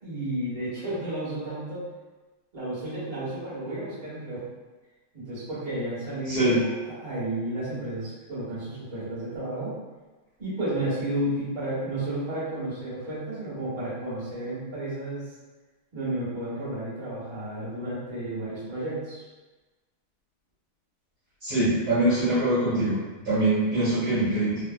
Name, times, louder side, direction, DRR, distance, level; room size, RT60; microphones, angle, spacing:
voice 1, 0.0-1.8 2.5-4.5 5.1-9.7 10.4-15.2 15.9-19.2, right 1 dB, 25° right, -11 dB, 1.3 m, -32 dB
voice 2, 6.3-6.6 21.4-23.0 23.2-24.6, right 1 dB, 50° right, -12 dB, 1.6 m, -23 dB
3.2 x 3.2 x 2.2 m, 1.2 s
omnidirectional pair, 2.4 m